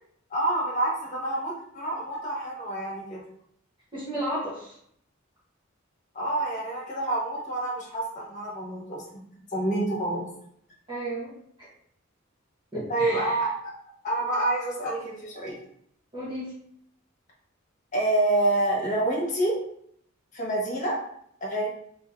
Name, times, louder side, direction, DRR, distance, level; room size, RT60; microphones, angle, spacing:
voice 1, 0.3-3.2 6.1-9.0 9.5-10.2 12.9-13.5 14.0-15.6 17.9-19.5 20.3-21.0 21.4-21.7, right 2 dB, 40° left, -4 dB, 1.1 m, -27 dB
voice 2, 3.9-4.8 10.9-11.3 11.6-11.7 12.7-13.4 16.1-16.5, right 1 dB, 25° right, -10 dB, 0.9 m, -33 dB
2.7 x 2.6 x 3.4 m, 0.67 s
head